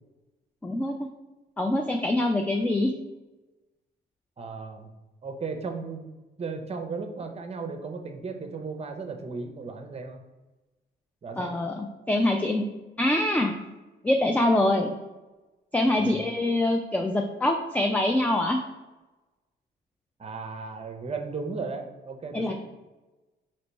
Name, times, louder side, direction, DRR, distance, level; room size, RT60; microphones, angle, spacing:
voice 1, 0.6-1.1 1.6-2.9 11.4-12.7 13.0-13.5 14.0-14.9 15.7-18.6 22.3-22.5, left 1 dB, 10° left, 3 dB, 0.3 m, -24 dB
voice 2, 4.4-4.9 5.2-6.1 6.4-10.2 11.2-11.5 16.0-16.2 20.2-22.5, right 4 dB, 30° right, 5 dB, 0.6 m, -35 dB
3.0 x 2.8 x 4.4 m, 1.1 s
cardioid pair, 90°, 20 cm